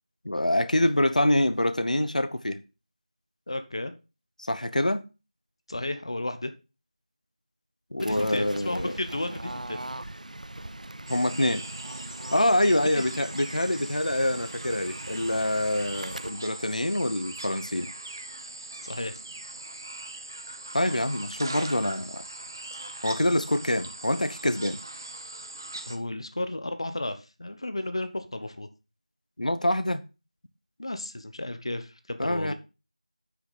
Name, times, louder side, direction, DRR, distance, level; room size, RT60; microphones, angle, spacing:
voice 1, 0.2-2.6 4.4-5.0 7.9-8.9 11.1-11.6 12.3-17.9 20.7-22.2 23.0-24.8 29.4-30.0 32.2-32.5, left 1 dB, 80° left, 1.0 m, -25 dB
voice 2, 3.5-3.9 5.7-6.5 8.0-9.8 12.8-13.0 18.8-19.2 25.9-28.7 30.8-32.5, left 1 dB, 45° left, 1.0 m, -33 dB
Fowl / Bird, 8.0-16.3, right 1 dB, 80° right, 0.5 m, -41 dB
sound 1, 11.1-26.0, right 2 dB, 30° right, 0.8 m, -41 dB
9.8 x 6.2 x 4.1 m
figure-of-eight pair, 175°, 4 cm